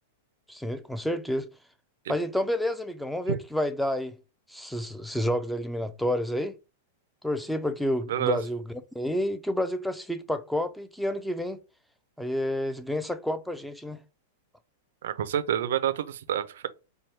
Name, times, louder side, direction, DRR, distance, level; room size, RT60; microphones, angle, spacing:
voice 1, 0.5-1.5 2.1-4.1 4.5-6.6 7.2-11.6 12.2-14.0, left 1 dB, ahead, 0.5 m, -29 dB
voice 2, 8.1-8.4 15.0-16.7, right 10 dB, 75° right, 0.5 m, -28 dB
4.5 x 2.3 x 3.3 m
hypercardioid pair, 125°, 0 cm